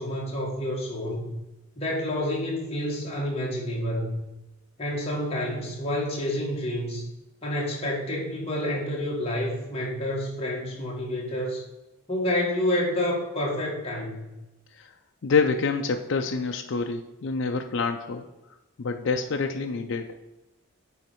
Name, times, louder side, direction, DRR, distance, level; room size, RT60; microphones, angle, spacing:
voice 1, 0.0-1.3 1.7-4.2 4.8-7.0 7.4-11.6 12.1-14.3, left 1 dB, 30° left, -3 dB, 1.7 m, -29 dB
voice 2, 15.2-18.2 18.8-20.1, left 4 dB, 60° left, 4 dB, 0.4 m, -27 dB
9.2 x 3.2 x 4.5 m, 1.0 s
head